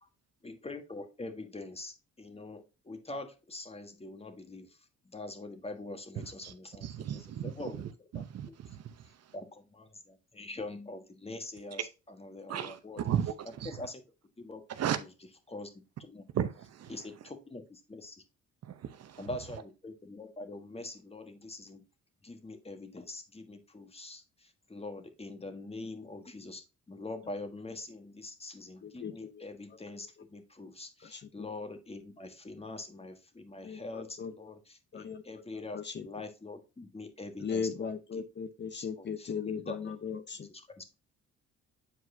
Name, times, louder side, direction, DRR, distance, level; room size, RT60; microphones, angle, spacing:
voice 1, 0.4-4.8 5.0-7.8 8.1-8.6 9.3-11.8 12.1-13.0 13.6-14.0 14.4-14.6 14.9-15.1 15.5-15.7 16.0-16.2 16.9-18.2 19.2-21.8 22.2-38.2 38.7-39.9 40.4-40.9, left 2 dB, 20° left, 1.4 m, -44 dB
voice 2, 6.2-6.5 6.8-9.3 12.5-13.9 14.7-15.0 16.3-17.1 18.6-19.3, right 9 dB, 55° right, 0.8 m, -36 dB
voice 3, 28.8-29.4 31.1-31.2 33.6-34.3 34.9-35.2 35.7-36.1 37.4-40.5, left 6 dB, 35° left, 0.7 m, -37 dB
8.2 x 4.6 x 2.7 m
cardioid pair, 90°, 30 cm